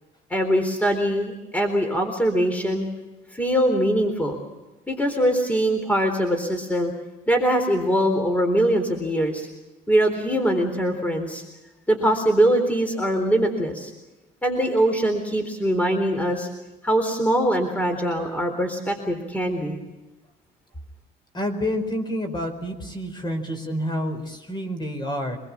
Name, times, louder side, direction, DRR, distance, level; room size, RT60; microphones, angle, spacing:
voice 1, 0.3-2.9 3.3-4.4 4.9-6.9 7.3-9.5 9.9-11.4 11.9-13.9 14.4-16.5 16.8-19.8, right 1 dB, 10° left, 6 dB, 3.8 m, -22 dB
voice 2, 21.3-25.4, equal, 25° left, 7 dB, 4.7 m, -28 dB
26.0 x 21.0 x 7.3 m, 1.1 s
cardioid pair, 110°, 17 cm